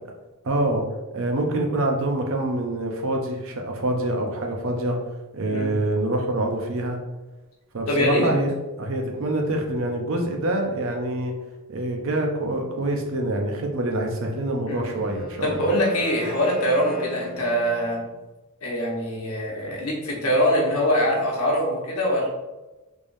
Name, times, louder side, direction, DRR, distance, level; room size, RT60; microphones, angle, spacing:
voice 1, 0.4-0.8 1.1-5.0 5.3-7.0 7.7-11.3 11.7-15.7, right 1 dB, 65° right, 2 dB, 0.6 m, -26 dB
voice 2, 7.9-8.3 14.7-14.9 15.4-18.0 18.6-22.3, equal, 75° left, -2 dB, 1.0 m, -23 dB
Wind instrument woodwind instrument, 14.8-18.1, left 2 dB, 5° right, 0.7 m, -39 dB
3.5 x 3.4 x 2.6 m, 1.1 s
head